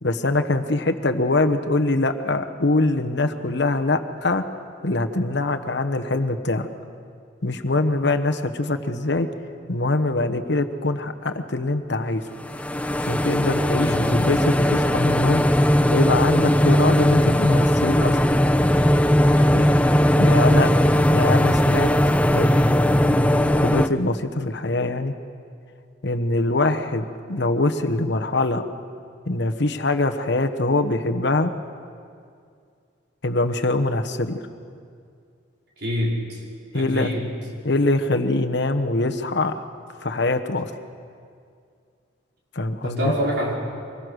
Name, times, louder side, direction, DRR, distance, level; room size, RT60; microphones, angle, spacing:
voice 1, 0.0-4.4 4.8-6.7 7.4-9.3 9.7-12.2 13.0-15.4 15.9-18.2 19.5-19.6 20.2-25.1 26.0-28.7 29.3-31.5 33.2-34.4 36.7-37.1 37.6-39.6 40.0-40.7 42.5-43.1, left 2 dB, 60° left, 6 dB, 1.1 m, -23 dB
sound 1, 12.4-23.9, equal, 5° left, 0.5 m, -18 dB
voice 2, 13.8-14.2 20.3-20.7 35.8-36.4 36.7-37.3 42.8-43.5, equal, 60° right, -3 dB, 5.0 m, -27 dB
24.0 x 21.0 x 6.4 m, 2.3 s
head